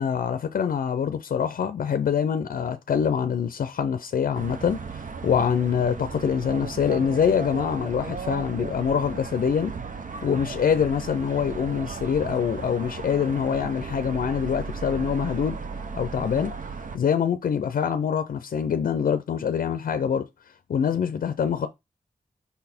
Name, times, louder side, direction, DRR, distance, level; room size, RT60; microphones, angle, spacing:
voice 1, 0.0-4.8 5.2-9.7 10.2-15.6 15.9-16.5 16.9-20.3 20.7-21.7, left 7 dB, 85° left, 0.5 m, -25 dB
sound 1, 4.3-17.0, right 5 dB, 70° right, 0.8 m, -36 dB
5.6 x 4.0 x 4.3 m
cardioid pair, 60°, 14 cm